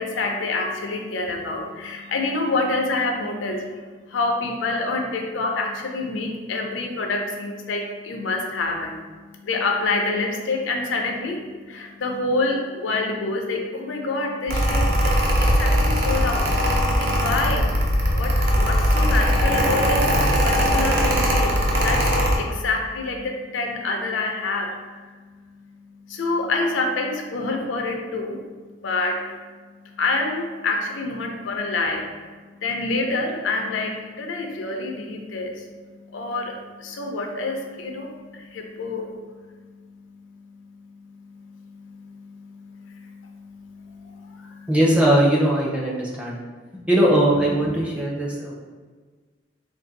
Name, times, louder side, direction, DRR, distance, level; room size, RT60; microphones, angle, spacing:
voice 1, 0.0-9.0 9.4-15.1 15.4-17.7 18.1-20.1 20.4-25.1 26.1-28.4 28.8-29.2 30.0-35.7 36.1-39.2 41.1-44.7, left 3 dB, 85° left, 2 dB, 0.5 m, -27 dB
Mechanical fan, 14.5-22.4, equal, 55° right, 0.5 m, -20 dB
voice 2, 44.7-46.4 46.9-48.5, right 1 dB, 5° right, -4 dB, 0.5 m, -19 dB
2.6 x 2.5 x 3.9 m, 1.4 s
head